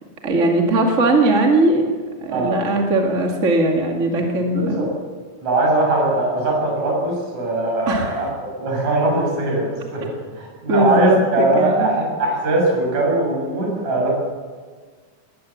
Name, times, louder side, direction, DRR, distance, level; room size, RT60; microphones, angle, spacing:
voice 1, 0.2-1.9 2.2-4.9 7.9-8.2 10.7-11.9, right 2 dB, 25° right, 1 dB, 1.9 m, -19 dB
voice 2, 4.5-4.9 5.4-8.3 8.6-14.1, right 2 dB, 60° right, -2 dB, 8.8 m, -20 dB
21.0 x 18.0 x 7.3 m, 1.6 s
omnidirectional pair, 3.7 m